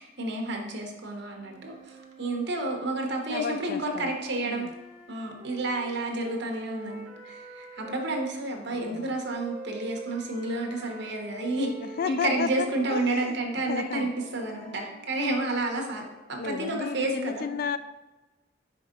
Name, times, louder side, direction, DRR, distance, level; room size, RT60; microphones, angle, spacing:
voice 1, 0.0-4.7 5.1-11.7 12.1-16.0 16.3-17.5, right 2 dB, 65° right, 1 dB, 1.1 m, -30 dB
Flute - C major - bad-tempo-staccato, 1.3-8.3 9.0-16.2, right 3 dB, 35° right, 1.4 m, -46 dB
voice 2, 3.3-4.1 4.5-4.7 8.7-9.1 11.8-13.4 13.7-14.1 14.5-14.8 16.4-17.8, left 6 dB, 50° left, 12 dB, 0.3 m, -33 dB
5.3 x 5.0 x 3.8 m, 1.1 s
head